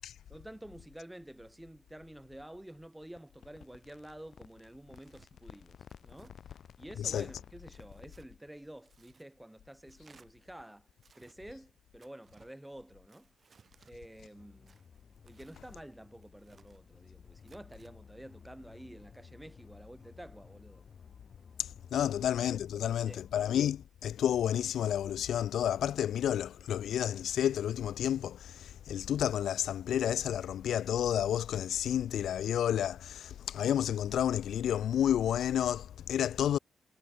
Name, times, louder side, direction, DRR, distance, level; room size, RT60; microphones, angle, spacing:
voice 1, 0.3-10.9 11.1-13.3 13.9-14.8 15.2-20.8 22.0-22.1 22.7-23.2, right 1 dB, 5° right, 3.6 m, -50 dB
sound 1, 3.2-8.2, left 8 dB, 60° left, 1.9 m, -54 dB
Tearing, 4.9-5.3 5.9-6.3 7.0-7.3 7.7-8.3 8.8-9.3 9.9-10.3 11.0-11.4 12.0-12.5 13.1-13.9 14.7-15.6 16.2-16.8 17.4-17.9, right 5 dB, 40° right, 5.7 m, -63 dB
sound 2, 14.3-23.9, left 6 dB, 45° left, 6.7 m, -56 dB
voice 2, 21.9-36.6, left 10 dB, 85° left, 0.4 m, -30 dB
wide cardioid pair, 145°, 0 cm